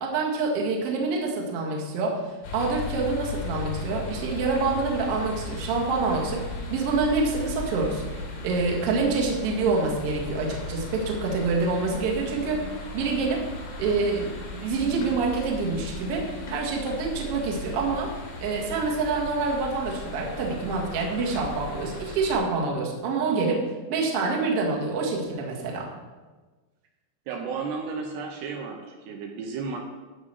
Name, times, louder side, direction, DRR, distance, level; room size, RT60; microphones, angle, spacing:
voice 1, 0.0-13.4 13.8-14.3 14.6-23.6 23.9-25.9, right 4 dB, 50° right, -1 dB, 1.9 m, -27 dB
sound 1, 2.4-22.4, left 2 dB, 75° left, 4.3 m, -37 dB
voice 2, 27.3-29.8, right 5 dB, 75° right, 2 dB, 2.7 m, -33 dB
12.5 x 5.1 x 7.6 m, 1.3 s
omnidirectional pair, 5.2 m